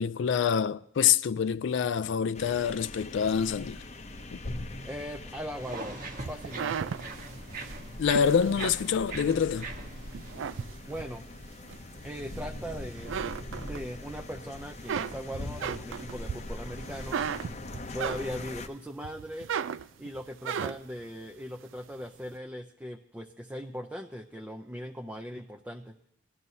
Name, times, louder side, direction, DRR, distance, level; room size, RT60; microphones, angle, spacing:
voice 1, 0.0-3.8 4.3-4.4 8.0-9.7, left 7 dB, 75° left, 0.3 m, -26 dB
sound 1, 2.3-18.7, left 2 dB, 35° left, 0.6 m, -42 dB
voice 2, 4.8-6.0 6.3-6.9 10.9-11.2 12.0-13.2 13.6-17.2 17.9-19.5 20.0-26.0, equal, 10° right, 0.4 m, -39 dB
sound 2, 5.6-10.7, right 3 dB, 45° right, 1.2 m, -42 dB
sound 3, 6.2-9.6 10.1-11.2 11.7-12.7 13.0-14.2 14.6-18.6 19.0-21.0, right 7 dB, 90° right, 0.4 m, -35 dB
19.5 x 12.5 x 2.7 m
head